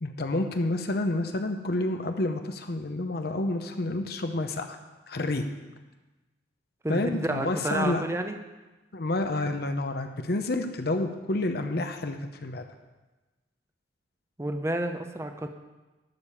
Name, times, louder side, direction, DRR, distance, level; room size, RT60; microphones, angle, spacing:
voice 1, 0.0-4.8 5.1-5.4 6.9-8.0 8.9-12.7, left 2 dB, 55° left, 6 dB, 0.7 m, -29 dB
voice 2, 6.8-8.4 14.4-15.5, right 1 dB, 15° right, 6 dB, 0.6 m, -30 dB
12.0 x 5.1 x 7.2 m, 1.1 s
head